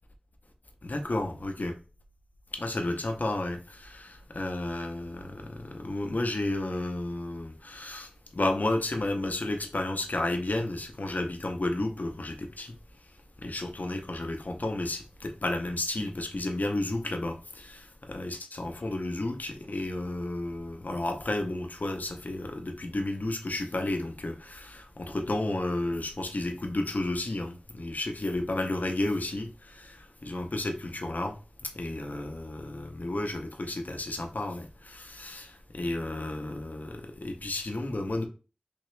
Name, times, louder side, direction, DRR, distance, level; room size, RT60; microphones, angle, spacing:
voice 1, 0.8-1.7 2.5-12.7 13.4-31.4 31.7-38.3, left 2 dB, 60° left, 0.6 m, -32 dB
3.5 x 2.9 x 3.2 m
wide cardioid pair, 50°, 3 cm